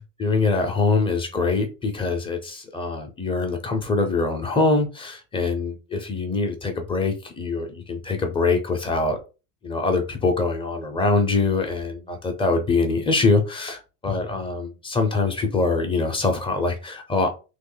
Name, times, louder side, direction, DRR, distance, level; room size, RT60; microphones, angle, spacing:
voice 1, 0.0-9.2 9.6-17.3, left 3 dB, 15° left, 0.5 m, -24 dB
3.0 x 2.3 x 3.8 m
supercardioid pair, 150°, 35 cm